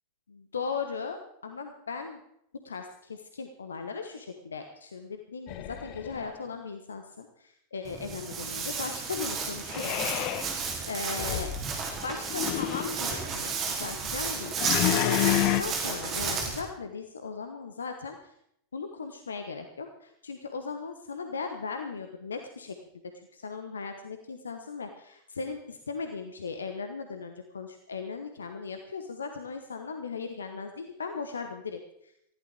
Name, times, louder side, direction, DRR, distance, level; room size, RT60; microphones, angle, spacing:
voice 1, 0.3-2.2 2.6-9.9 10.9-11.5 12.0-14.5 15.0-18.3 18.7-22.8 23.3-32.1, left 5 dB, 70° left, 6 dB, 1.2 m, -37 dB
sound 1, 5.5-6.3 9.7-10.5 11.2-11.6 12.3-12.9 14.6-15.6, left 13 dB, 45° left, 0.9 m, -29 dB
Walk footsteps, 7.8-16.6, right 5 dB, 30° right, 3.2 m, -33 dB
20.0 x 15.0 x 3.6 m, 0.76 s
figure-of-eight pair, 90°, 0 cm